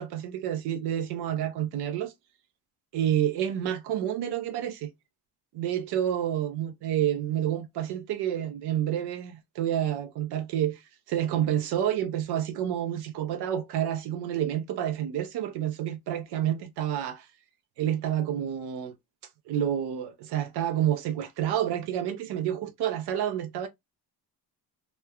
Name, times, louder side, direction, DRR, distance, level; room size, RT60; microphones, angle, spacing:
voice 1, 0.0-2.1 2.9-4.9 5.5-17.3 17.8-18.9 19.5-23.7, right 10 dB, 75° right, 0.5 m, -29 dB
3.0 x 2.1 x 2.3 m
cardioid pair, 160°, 40 cm